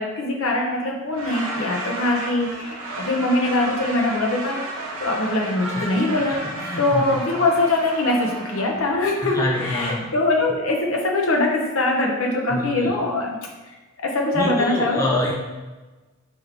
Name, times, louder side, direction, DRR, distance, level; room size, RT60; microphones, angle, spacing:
voice 1, 0.0-4.6 5.0-6.4 6.8-13.4 14.0-15.1, left 2 dB, 70° left, 0 dB, 0.7 m, -22 dB
sound 1, 1.1-9.9, right 2 dB, 80° right, 0.7 m, -33 dB
voice 2, 5.7-7.1 9.2-10.1 12.3-12.9 14.3-15.3, left 1 dB, 15° left, -2 dB, 0.3 m, -27 dB
3.4 x 3.1 x 3.6 m, 1.2 s
head